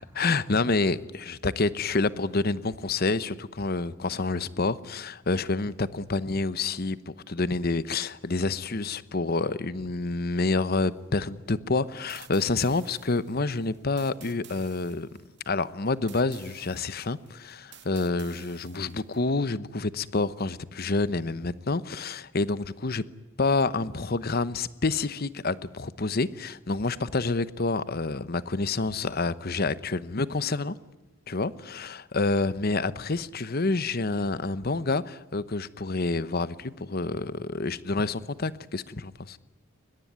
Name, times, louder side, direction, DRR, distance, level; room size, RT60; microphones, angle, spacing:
voice 1, 0.1-15.1 15.5-23.0 23.4-30.8 31.3-39.4, left 3 dB, 50° left, 0.9 m, -28 dB
sound 1, 12.1-19.2, right 11 dB, 60° right, 2.3 m, -52 dB
22.5 x 20.5 x 9.5 m
head